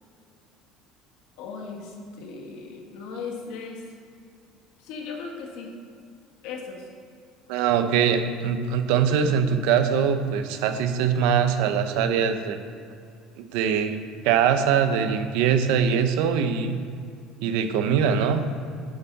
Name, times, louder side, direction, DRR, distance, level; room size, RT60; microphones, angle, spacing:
voice 1, 1.4-3.8 4.8-5.7 6.4-6.8, left 5 dB, 70° left, 2 dB, 1.5 m, -37 dB
voice 2, 7.5-12.6 13.4-16.8 17.4-18.4, right 7 dB, 80° right, 8 dB, 0.7 m, -22 dB
9.0 x 7.2 x 4.1 m, 2.4 s
cardioid pair, 150°, 0 cm